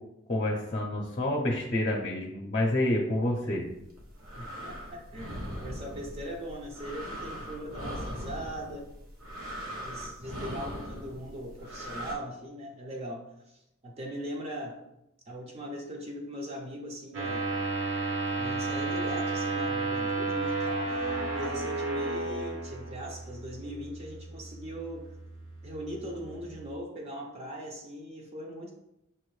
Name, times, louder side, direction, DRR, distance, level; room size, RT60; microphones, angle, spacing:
voice 1, 0.3-3.6, left 1 dB, 35° left, -1 dB, 0.6 m, -28 dB
sound 1, 3.8-12.1, equal, 90° right, 1.0 m, -40 dB
voice 2, 4.4-8.9 9.8-14.8 15.3-17.5 18.4-25.2 25.6-28.7, equal, 30° right, -1 dB, 0.5 m, -40 dB
sound 2, 17.1-26.7, right 3 dB, 60° right, 0.8 m, -33 dB
5.7 x 2.6 x 3.1 m, 0.86 s
head